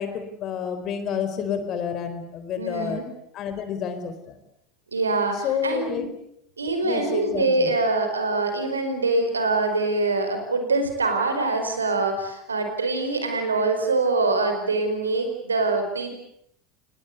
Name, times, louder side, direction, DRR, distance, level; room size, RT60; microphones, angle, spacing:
voice 1, 0.0-3.0 3.3-4.4 5.3-6.1 6.8-7.7, left 7 dB, 45° left, 10 dB, 4.4 m, -29 dB
voice 2, 2.6-3.0 4.9-6.1 6.6-16.1, right 3 dB, 85° right, 7 dB, 4.8 m, -24 dB
29.0 x 20.0 x 8.3 m, 0.72 s
figure-of-eight pair, 75°, 0 cm